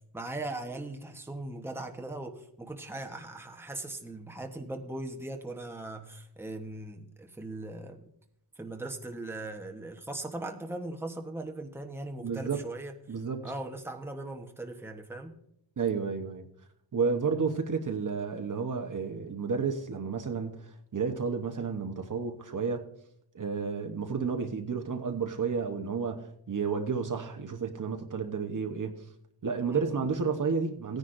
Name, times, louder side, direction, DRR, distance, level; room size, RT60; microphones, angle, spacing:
voice 1, 0.1-8.1 8.6-12.9 13.4-15.4 29.7-30.1, right 2 dB, 5° right, 1.0 m, -39 dB
voice 2, 12.2-12.6 13.1-13.4 15.8-16.5 16.9-22.9 23.3-29.0 29.4-31.0, right 5 dB, 45° right, 1.0 m, -31 dB
17.0 x 9.9 x 2.6 m
wide cardioid pair, 110°, 45 cm